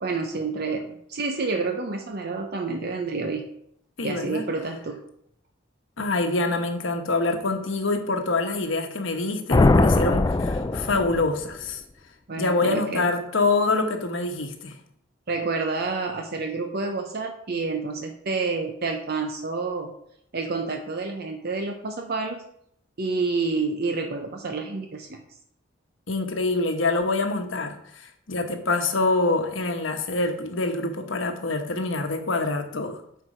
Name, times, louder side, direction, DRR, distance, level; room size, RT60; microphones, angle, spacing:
voice 1, 0.0-3.5 4.0-5.0 12.3-13.1 15.3-19.9 20.3-22.5 23.0-25.2, right 4 dB, 55° right, 4 dB, 0.8 m, -29 dB
voice 2, 4.0-4.4 6.0-11.8 12.4-14.8 26.1-33.0, left 3 dB, 80° left, 6 dB, 1.1 m, -25 dB
sound 1, 9.5-11.5, left 2 dB, 20° left, 0.3 m, -20 dB
8.2 x 4.7 x 5.0 m, 0.71 s
head